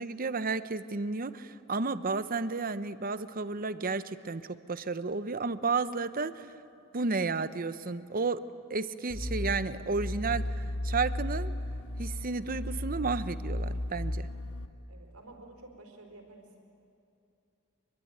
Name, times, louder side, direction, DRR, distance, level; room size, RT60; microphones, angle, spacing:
voice 1, 0.0-6.5 6.9-11.6 12.0-14.3, right 4 dB, 40° right, 13 dB, 0.8 m, -32 dB
sound 1, 9.1-14.7, left 1 dB, 80° left, 1.7 m, -34 dB
voice 2, 14.9-16.6, right 2 dB, 80° right, 3 dB, 4.8 m, -51 dB
25.0 x 23.0 x 9.3 m, 2.7 s
head